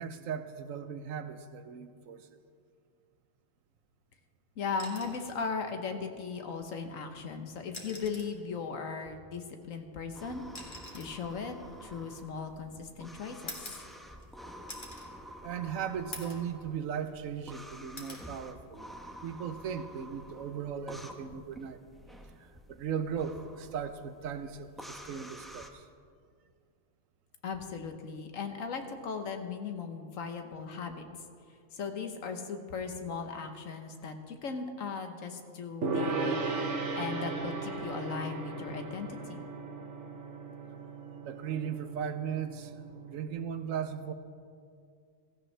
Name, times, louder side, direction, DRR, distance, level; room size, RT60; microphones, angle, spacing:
voice 1, 0.0-2.4 15.4-18.9 19.2-21.8 22.3-25.9 41.2-42.7 43.1-44.1, right 7 dB, 85° right, 10 dB, 1.1 m, -37 dB
voice 2, 4.6-11.6 11.8-13.5 27.4-31.0 31.7-36.4 37.0-39.4, left 5 dB, 80° left, 6 dB, 1.4 m, -38 dB
sound 1, 4.8-5.4 6.8-7.0 7.6-8.4 9.6-12.6 13.5-14.3 14.7-15.1 15.6-15.7 16.1-16.5 16.9-17.5 18.0-18.3 19.7-20.0, left 1 dB, 40° left, 2.0 m, -47 dB
sound 2, 10.1-25.7, equal, ahead, 0.6 m, -49 dB
Gong, 35.8-43.3, right 3 dB, 65° right, 1.3 m, -36 dB
16.0 x 14.5 x 3.3 m, 2.2 s
omnidirectional pair, 1.3 m